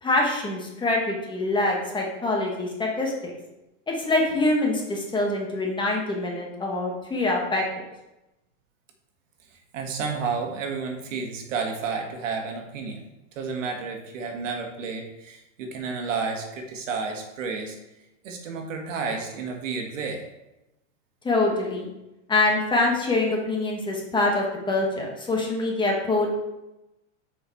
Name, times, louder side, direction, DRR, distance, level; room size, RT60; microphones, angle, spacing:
voice 1, 0.0-3.3 3.9-7.6 21.2-21.9 22.3-26.4, left 2 dB, 10° left, -1 dB, 1.2 m, -25 dB
voice 2, 9.5-13.0 13.3-17.8 18.2-20.2, right 5 dB, 85° right, 3 dB, 1.6 m, -31 dB
6.7 x 5.1 x 4.5 m, 0.95 s
supercardioid pair, 145°, 37 cm